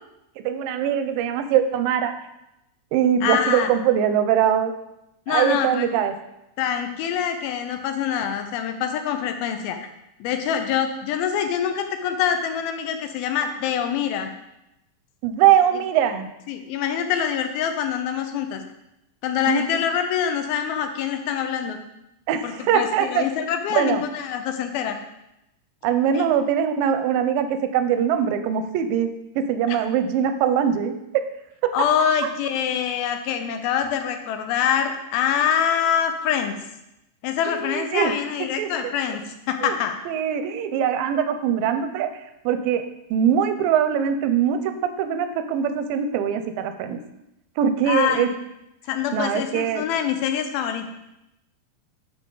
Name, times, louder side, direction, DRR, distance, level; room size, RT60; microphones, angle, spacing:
voice 1, 0.4-2.1 2.9-4.7 5.3-6.1 15.2-16.3 19.5-19.6 22.3-23.2 23.7-24.0 25.8-27.5 27.7-29.1 29.4-30.9 31.6-31.9 37.5-38.1 38.6-38.7 39.6-39.8 40.1-42.1 42.5-42.8 43.1-47.0 47.6-48.3 49.1-49.8, right 9 dB, 80° right, 8 dB, 2.2 m, -22 dB
voice 2, 3.2-3.7 5.3-5.9 6.6-9.9 10.2-14.3 16.5-18.6 19.2-21.8 22.4-25.0 26.1-26.3 29.7-29.8 31.7-36.5 37.2-39.2 39.5-40.0 47.9-48.3 48.9-50.9, left 8 dB, 85° left, 7 dB, 2.6 m, -25 dB
11.0 x 4.9 x 3.9 m, 0.87 s
omnidirectional pair, 4.3 m